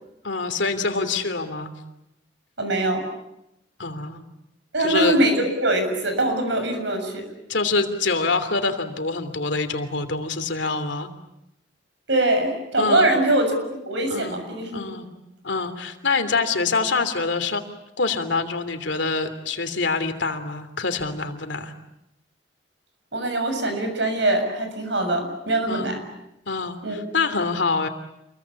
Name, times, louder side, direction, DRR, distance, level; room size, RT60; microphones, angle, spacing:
voice 1, 0.2-1.7 3.8-4.2 4.8-5.2 7.5-11.1 12.8-13.1 14.1-14.4 14.7-15.1 15.4-17.6 18.0-21.7 25.7-25.9 26.5-27.9, left 4 dB, 65° left, 8 dB, 3.0 m, -25 dB
voice 2, 2.6-3.1 4.7-7.3 12.1-14.8 23.1-26.0 26.8-27.0, right 1 dB, 70° right, 7 dB, 6.9 m, -23 dB
28.5 x 22.5 x 8.6 m, 0.86 s
head